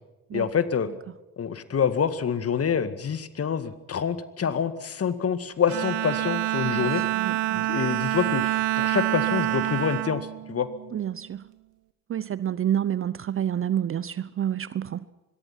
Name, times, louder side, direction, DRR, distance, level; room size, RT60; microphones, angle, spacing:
voice 1, 0.3-0.9 1.4-7.0 7.5-10.7, left 7 dB, 30° left, 2.0 m, -27 dB
Bowed string instrument, 5.7-11.2, right 17 dB, 60° right, 1.4 m, -27 dB
voice 2, 7.2-7.7 10.9-11.5 12.1-15.1, right 10 dB, 30° right, 0.8 m, -29 dB
25.5 x 22.0 x 5.9 m
figure-of-eight pair, 55°, 44 cm